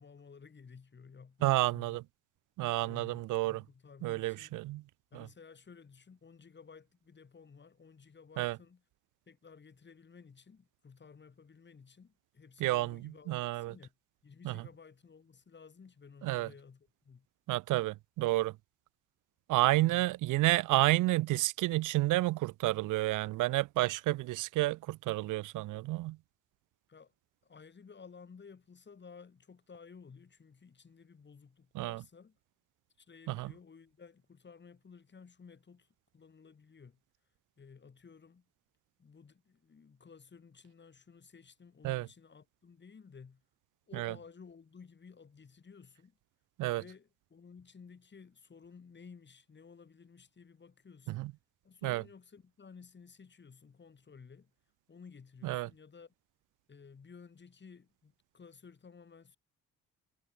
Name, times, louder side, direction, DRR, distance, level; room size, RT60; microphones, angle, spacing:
voice 1, 0.0-2.0 2.8-4.6 5.1-8.8 9.3-13.9 14.2-17.3 19.8-20.1 26.9-27.1 27.4-32.4 33.0-35.9 36.1-37.0 37.6-38.4 39.0-43.4 43.9-46.2 46.7-51.3 51.6-54.5 54.9-56.1 56.7-59.4, left 5 dB, 35° left, 5.1 m, -55 dB
voice 2, 1.4-2.0 2.6-3.6 4.0-4.8 5.1-5.3 8.4-8.6 12.6-13.7 14.4-14.6 16.2-16.5 17.5-18.5 19.5-26.2 31.7-32.0 33.3-33.5 41.8-42.1 43.9-44.1 46.6-46.8 51.1-51.3 51.8-52.0 55.4-55.7, right 18 dB, 90° right, 0.9 m, -30 dB
cardioid pair, 90°, 30 cm